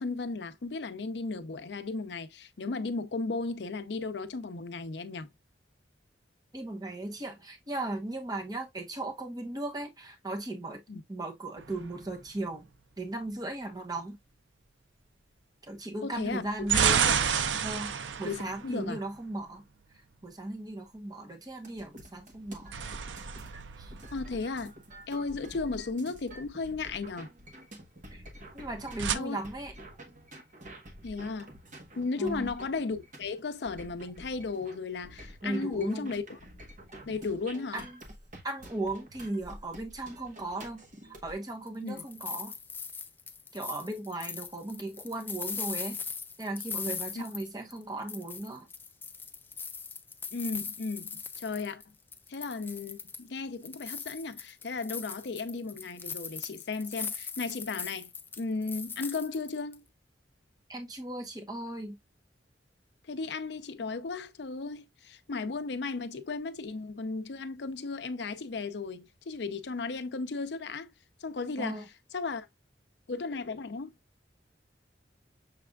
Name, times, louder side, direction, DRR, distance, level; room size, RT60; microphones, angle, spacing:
voice 1, 0.0-5.3 10.9-11.0 16.0-16.7 17.0-17.1 18.2-19.0 24.1-24.7 25.1-27.3 29.1-29.4 31.0-31.5 32.0-36.4 37.1-37.8 41.8-42.1 47.1-47.2 50.3-51.8 52.3-59.8 63.1-70.9 71.2-71.8 72.1-72.5 73.1-73.9, left 4 dB, 70° left, 0.6 m, -35 dB
voice 2, 6.5-10.8 11.1-12.7 13.0-14.2 15.6-17.1 17.6-19.6 20.2-22.7 23.8-23.9 28.1-28.2 28.5-29.7 32.2-32.5 35.4-36.1 37.7-38.0 38.4-40.8 41.2-42.5 43.5-46.0 46.4-48.7 60.7-62.0 71.6-71.9, right 2 dB, 20° right, 1.0 m, -37 dB
sound 1, 11.6-12.6 16.2-19.5 22.3-24.8 28.6-29.2, right 7 dB, 90° right, 0.5 m, -30 dB
sound 2, 21.6-41.3, equal, 45° right, 1.2 m, -49 dB
sound 3, 41.7-47.8 48.1-51.8 52.1-53.3 53.6-59.7, left 5 dB, 10° left, 0.3 m, -40 dB
6.5 x 3.4 x 2.3 m
head